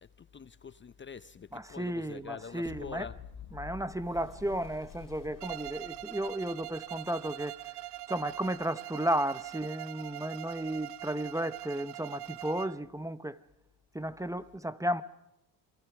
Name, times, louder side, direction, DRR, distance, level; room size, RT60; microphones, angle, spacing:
voice 1, 0.0-3.1, left 6 dB, 30° left, 0.7 m, -45 dB
voice 2, 1.5-3.1 3.5-7.8 8.1-13.4 13.9-15.0, right 1 dB, 10° right, 0.9 m, -34 dB
sound 1, 2.6-6.8, left 7 dB, 50° left, 2.8 m, -48 dB
Bowed string instrument, 5.4-12.9, right 17 dB, 70° right, 0.8 m, -43 dB
27.5 x 23.0 x 6.0 m
cardioid pair, 95°, 41 cm